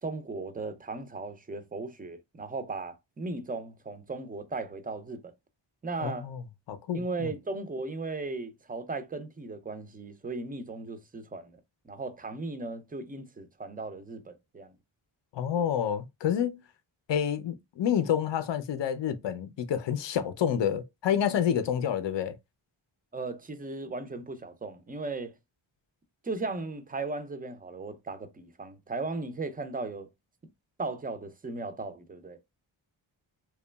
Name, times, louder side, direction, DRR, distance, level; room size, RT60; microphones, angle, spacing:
voice 1, 0.0-5.3 5.8-6.3 6.9-14.7 23.1-25.4 26.2-30.1 30.8-32.4, right 3 dB, 20° right, 0.4 m, -37 dB
voice 2, 6.0-6.4 6.7-7.3 15.3-16.6 17.1-22.4, left 9 dB, 65° left, 0.5 m, -28 dB
2.9 x 2.3 x 2.2 m
wide cardioid pair, 80°, 48 cm